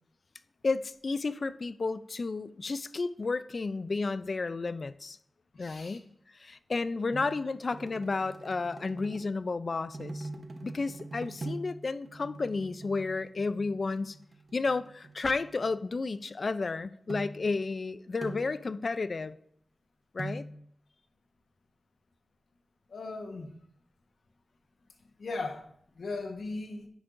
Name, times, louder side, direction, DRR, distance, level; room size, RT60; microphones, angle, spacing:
voice 1, 0.6-5.2 5.6-6.0 6.3-10.3 10.6-14.2 14.5-19.4 20.1-20.4, left 3 dB, 60° left, 0.4 m, -32 dB
voice 2, 5.5-6.0 22.9-23.5 25.2-25.6 26.0-26.9, left 3 dB, 80° left, 1.3 m, -37 dB
sound 1, 7.1-9.4 9.9-11.8 12.1-15.8 16.6-16.7 17.1-17.5 18.2-18.6 20.2-20.5, right 2 dB, 60° right, 1.0 m, -43 dB
9.8 x 7.1 x 2.6 m
cardioid pair, 50°, 0 cm